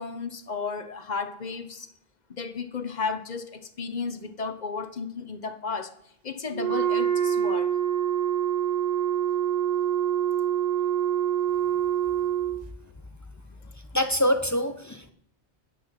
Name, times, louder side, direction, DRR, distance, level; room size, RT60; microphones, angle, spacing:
voice 1, 0.0-1.9 2.3-5.9 6.2-7.7, left 5 dB, 45° left, 1.0 m, -33 dB
Wind instrument woodwind instrument, 6.5-12.6, right 10 dB, 40° right, 0.8 m, -25 dB
voice 2, 13.9-15.1, equal, 20° left, 0.7 m, -25 dB
10.0 x 9.0 x 5.9 m
omnidirectional pair, 1.1 m